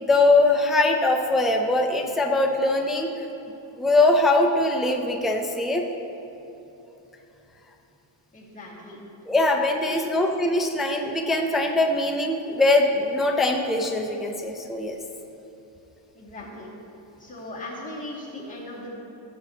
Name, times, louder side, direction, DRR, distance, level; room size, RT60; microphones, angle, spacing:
voice 1, 0.0-3.1 3.8-5.8 9.3-15.0, left 2 dB, ahead, 2 dB, 0.3 m, -22 dB
voice 2, 8.3-9.0 9.8-10.1 16.1-16.7 17.2-18.9, left 1 dB, 15° left, -7 dB, 2.2 m, -38 dB
14.5 x 7.0 x 2.9 m, 3.0 s
cardioid pair, 140°, 48 cm